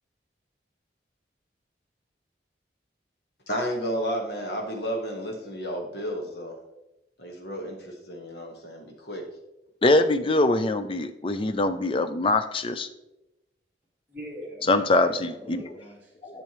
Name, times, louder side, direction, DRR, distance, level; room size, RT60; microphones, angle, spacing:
voice 1, 3.5-6.6 7.2-9.3, equal, 60° left, 2 dB, 1.5 m, -32 dB
voice 2, 9.8-12.9 14.7-15.7 16.2-16.4, left 2 dB, 30° left, 9 dB, 0.4 m, -23 dB
voice 3, 14.1-16.4, equal, 10° right, -8 dB, 2.7 m, -43 dB
10.5 x 6.8 x 3.1 m, 0.95 s
head